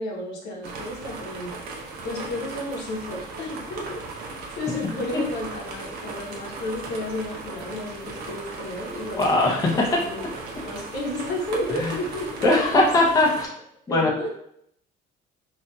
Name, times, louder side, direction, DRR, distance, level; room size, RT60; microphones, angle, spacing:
voice 1, 0.0-12.7 13.0-13.1 13.9-14.3, left 1 dB, 75° left, -2 dB, 0.9 m, -33 dB
sound 1, 0.6-13.5, right 3 dB, 60° right, 0.6 m, -37 dB
voice 2, 9.2-9.7 11.8-11.9 12.4-13.5 13.9-14.1, left 2 dB, 20° left, -2 dB, 0.5 m, -19 dB
2.7 x 2.5 x 2.2 m, 0.71 s
cardioid pair, 130°, 18 cm